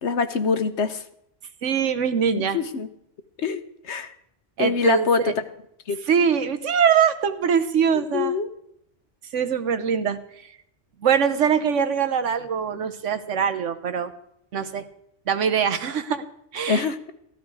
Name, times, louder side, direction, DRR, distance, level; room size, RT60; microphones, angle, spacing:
voice 1, 0.0-1.0 2.3-2.9 3.4-4.1 4.6-5.3 5.9-6.0 7.9-8.5 16.7-17.1, left 5 dB, 70° left, 10 dB, 1.2 m, -24 dB
voice 2, 1.6-2.6 4.6-5.3 6.1-8.4 9.3-10.5 11.0-14.1 14.5-14.9 15.3-16.2 16.5-16.9, right 7 dB, 85° right, 9 dB, 1.3 m, -23 dB
14.5 x 13.0 x 4.8 m, 0.74 s
omnidirectional pair, 1.2 m